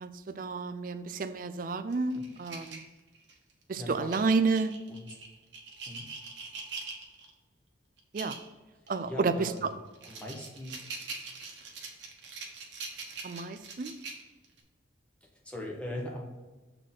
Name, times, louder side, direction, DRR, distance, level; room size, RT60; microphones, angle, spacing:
voice 1, 0.0-2.8 3.7-4.7 8.1-8.4 8.9-9.7 13.2-14.0, right 4 dB, 45° right, 11 dB, 0.4 m, -30 dB
sound 1, 1.9-3.5 4.1-7.3 8.0-8.5 8.9-9.0 9.6-14.6, right 4 dB, 70° right, 1.1 m, -43 dB
voice 2, 3.8-4.2 4.9-5.1 5.9-6.0 9.1-9.7 10.1-10.8 15.4-16.3, left 1 dB, 5° left, -2 dB, 1.1 m, -40 dB
6.4 x 3.8 x 6.0 m, 1.2 s
head